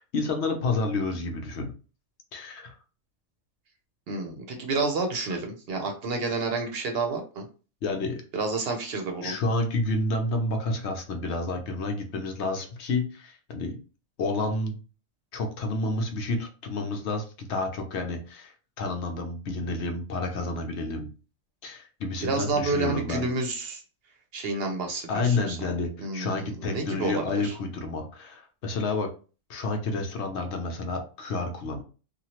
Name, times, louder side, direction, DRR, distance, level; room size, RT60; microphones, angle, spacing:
voice 1, 0.0-1.7 2.3-2.7 7.8-8.2 9.2-13.8 14.2-14.8 15.3-21.1 21.6-23.3 25.1-29.1 29.5-31.8, left 2 dB, 70° left, 4 dB, 0.9 m, -30 dB
voice 2, 4.1-7.5 8.3-9.3 22.2-23.8 24.3-25.6 26.0-27.6, right 3 dB, 60° right, 4 dB, 0.8 m, -29 dB
2.9 x 2.4 x 2.8 m, 0.36 s
omnidirectional pair, 1.3 m